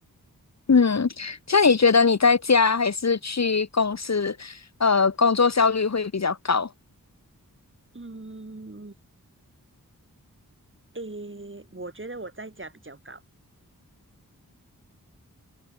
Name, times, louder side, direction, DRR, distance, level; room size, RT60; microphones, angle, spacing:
voice 1, 0.7-6.7, left 5 dB, 50° left, 1.2 m, -21 dB
voice 2, 7.9-8.9 10.9-13.2, right 2 dB, 35° right, 7.5 m, -39 dB
wide cardioid pair, 55°, 35 cm